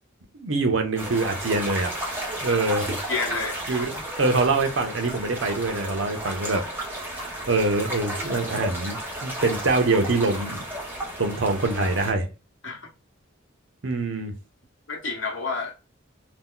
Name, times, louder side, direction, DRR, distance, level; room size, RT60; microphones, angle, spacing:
voice 1, 0.3-1.9 2.4-3.0 3.7-6.6 7.0-10.6 11.2-12.3 13.8-14.3, right 3 dB, 80° right, 0.8 m, -24 dB
sound 1, 1.0-12.1, right 1 dB, 10° right, 0.9 m, -33 dB
voice 2, 3.1-3.6 12.6-12.9 14.9-15.7, left 4 dB, 70° left, 1.0 m, -29 dB
2.8 x 2.2 x 3.7 m
head